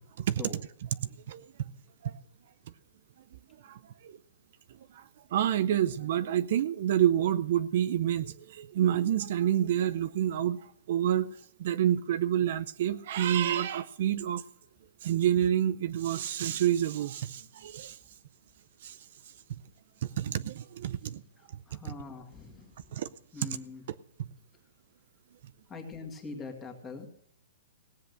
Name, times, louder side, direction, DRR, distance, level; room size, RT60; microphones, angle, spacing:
voice 1, 3.6-4.2 4.9-5.0 5.3-11.3 11.6-14.4 15.0-18.0 18.8-19.0 19.5-19.6 20.2-21.2 21.5-21.9 22.9-23.1 23.4-23.6 24.2-24.3, right 10 dB, 50° right, 15 dB, 0.5 m, -28 dB
voice 2, 21.4-22.7 23.3-23.8 25.7-27.1, left 4 dB, 10° left, 2 dB, 2.2 m, -43 dB
17.5 x 7.9 x 6.6 m, 0.69 s
hypercardioid pair, 165°, 0 cm